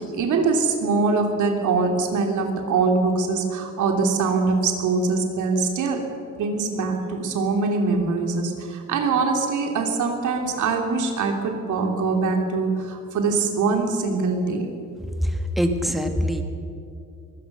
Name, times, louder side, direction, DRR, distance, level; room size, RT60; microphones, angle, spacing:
voice 1, 0.1-6.0 6.4-14.7, right 4 dB, 75° right, 3 dB, 3.1 m, -23 dB
voice 2, 15.2-16.4, equal, ahead, 5 dB, 1.9 m, -23 dB
23.5 x 16.5 x 6.9 m, 2.7 s
cardioid pair, 90°, 30 cm